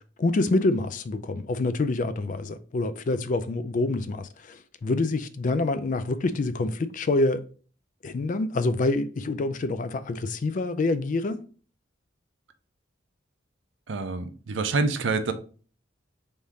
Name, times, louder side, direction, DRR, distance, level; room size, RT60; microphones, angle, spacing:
voice 1, 0.2-7.4 8.0-11.4, left 2 dB, 40° left, 0.3 m, -26 dB
voice 2, 13.9-15.3, right 3 dB, 65° right, 0.5 m, -27 dB
3.5 x 2.7 x 4.6 m
head